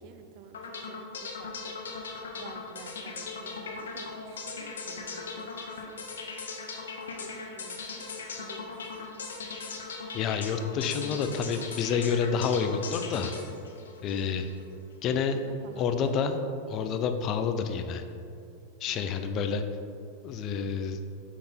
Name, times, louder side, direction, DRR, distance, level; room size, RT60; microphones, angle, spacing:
voice 1, 0.0-5.9 7.2-8.1 8.4-9.1 15.3-16.4 18.9-19.4, right 6 dB, 55° right, 8 dB, 0.5 m, -50 dB
sound 1, 0.5-14.6, left 4 dB, 85° left, 0.8 m, -39 dB
voice 2, 10.1-13.4 14.0-14.5 15.0-15.4 15.8-16.4 16.7-18.0 18.8-19.6 20.2-21.0, left 6 dB, 40° left, 7 dB, 0.5 m, -28 dB
6.3 x 3.9 x 4.4 m, 2.5 s
hypercardioid pair, 105°, 0 cm